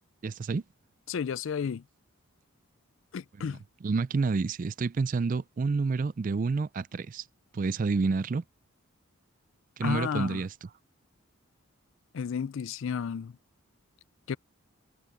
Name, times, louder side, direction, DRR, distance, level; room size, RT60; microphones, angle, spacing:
voice 1, 0.2-0.6 3.4-7.3 7.5-8.4 9.8-10.7, right 4 dB, 35° right, 0.3 m, -29 dB
voice 2, 1.1-1.8 3.1-3.6 9.8-10.4 12.1-13.3 14.3-14.4, left 6 dB, 60° left, 0.4 m, -32 dB
head